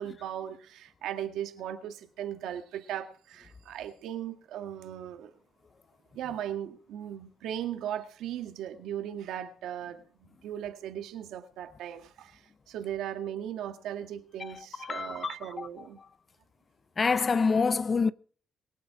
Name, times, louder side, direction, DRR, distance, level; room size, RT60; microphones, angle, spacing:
voice 1, 0.0-5.4 6.1-16.0, right 10 dB, 85° right, 2.0 m, -38 dB
voice 2, 14.8-15.7 17.0-18.1, left 5 dB, 35° left, 0.8 m, -27 dB
23.0 x 7.9 x 4.9 m
cardioid pair, 90°, 0 cm